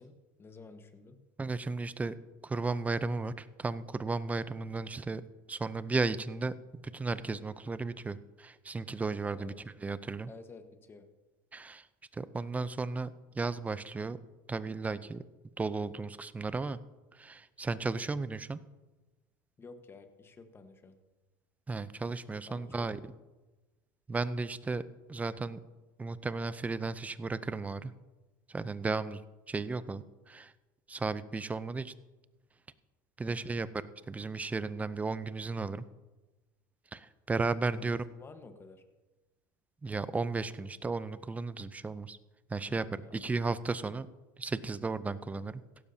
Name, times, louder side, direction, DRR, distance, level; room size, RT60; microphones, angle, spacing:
voice 1, 0.0-1.2 9.4-9.6 10.3-11.1 19.6-21.0 22.5-22.9 33.2-33.5 37.7-38.8 42.6-43.4, left 3 dB, 20° left, 8 dB, 1.3 m, -52 dB
voice 2, 1.4-2.1 2.4-5.2 5.5-6.5 6.8-9.5 9.8-10.3 11.5-11.9 12.1-14.2 14.5-15.2 15.6-16.8 17.1-18.6 21.7-23.0 24.1-25.6 26.0-27.9 28.5-29.2 29.5-30.5 30.9-31.9 33.2-33.7 34.1-35.8 36.9-38.0 39.8-42.2 42.5-42.9 43.1-44.1 44.4-45.6, right 3 dB, 15° right, 15 dB, 0.5 m, -34 dB
16.5 x 12.5 x 2.8 m, 1.2 s
supercardioid pair, 105°, 10 cm